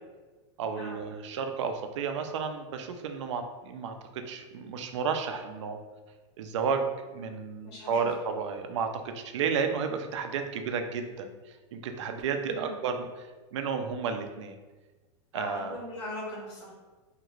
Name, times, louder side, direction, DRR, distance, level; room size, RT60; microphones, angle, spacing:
voice 1, 0.6-5.8 6.4-11.3 11.7-14.6 15.3-15.8, right 6 dB, 80° right, 6 dB, 0.4 m, -32 dB
voice 2, 7.6-8.1 12.4-12.7 15.3-16.8, left 1 dB, 75° left, -5 dB, 1.3 m, -40 dB
2.8 x 2.4 x 3.0 m, 1.3 s
supercardioid pair, 165°, 15 cm